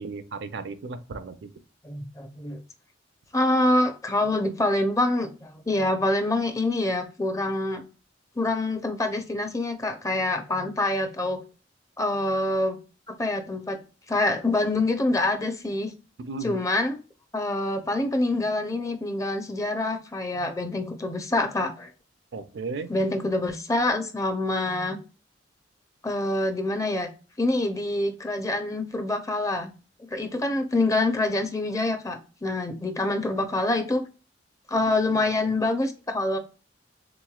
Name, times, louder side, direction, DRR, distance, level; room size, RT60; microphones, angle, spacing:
voice 1, 0.0-1.5 16.2-16.6 22.3-22.9, right 4 dB, 65° right, 11 dB, 0.4 m, -35 dB
voice 2, 1.8-2.6 3.3-7.8 8.4-11.4 12.0-12.8 13.2-13.8 14.1-15.9 16.4-17.0 17.3-21.9 22.9-25.0 26.0-27.1 27.4-29.7 30.1-34.0 34.7-36.4, left 2 dB, 20° left, 6 dB, 0.5 m, -26 dB
3.4 x 3.0 x 2.2 m, 0.34 s
head